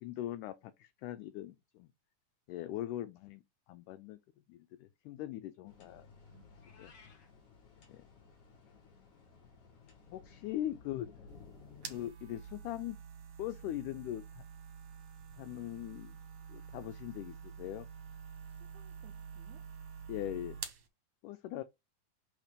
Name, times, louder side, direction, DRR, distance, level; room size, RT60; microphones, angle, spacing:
voice 1, 0.0-1.9 2.5-3.4 3.7-4.2 4.5-6.1 6.8-6.9 7.9-8.0 10.1-11.1 11.9-13.0 13.4-14.4 15.4-16.2 16.5-17.9 20.1-20.6 21.2-21.6, left 13 dB, 85° left, 1.8 m, -41 dB
sound 1, 5.7-12.1, left 5 dB, 55° left, 3.7 m, -57 dB
Meow, 6.5-7.3, left 5 dB, 70° left, 1.0 m, -60 dB
sound 2, 11.3-20.9, right 7 dB, 60° right, 1.7 m, -48 dB
voice 2, 18.5-19.7 21.5-21.6, right 14 dB, 85° right, 1.7 m, -62 dB
7.2 x 3.3 x 5.1 m
omnidirectional pair, 4.2 m